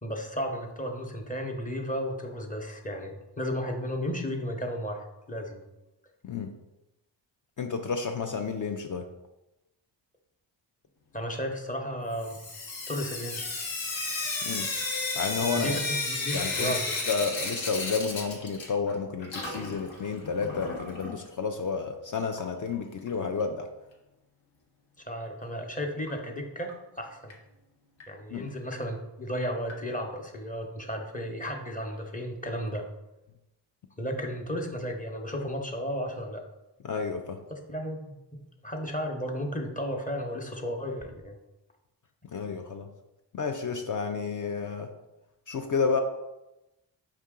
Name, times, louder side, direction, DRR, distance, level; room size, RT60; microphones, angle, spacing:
voice 1, 0.0-5.6 11.1-12.4 12.9-13.6 15.5-16.9 25.0-27.3 28.1-32.8 34.0-36.4 37.7-38.1 38.6-41.3, equal, 15° left, 2 dB, 0.8 m, -34 dB
voice 2, 7.6-9.1 14.4-14.7 15.1-15.7 16.3-16.7 17.1-23.7 28.3-28.5 36.8-37.4 42.3-42.9 43.3-44.9 45.5-46.0, left 5 dB, 45° left, 4 dB, 0.5 m, -31 dB
Sink (filling or washing) / Drip, 12.2-19.0 19.2-21.2 22.3-22.4 22.7-22.8 23.1-23.2 26.1-26.2 26.7-26.8 27.3-27.4 28.0-28.1 28.7-28.8 29.7-29.8, left 3 dB, 75° left, 1.0 m, -33 dB
4.7 x 2.7 x 3.6 m, 0.95 s
cardioid pair, 50°, 46 cm